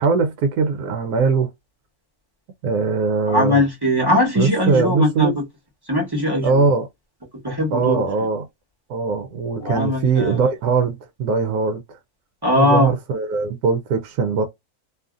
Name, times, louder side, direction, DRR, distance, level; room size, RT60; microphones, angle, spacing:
voice 1, 0.0-1.5 2.6-3.6 4.4-5.3 6.4-6.9 7.7-8.4 8.9-11.8 12.6-14.4, right 4 dB, 80° right, 1.1 m, -21 dB
voice 2, 3.3-5.4 5.9-6.6 7.4-8.3 9.6-10.4 12.4-12.9, left 1 dB, 20° right, 1.0 m, -20 dB
2.7 x 2.5 x 2.4 m
omnidirectional pair, 1.6 m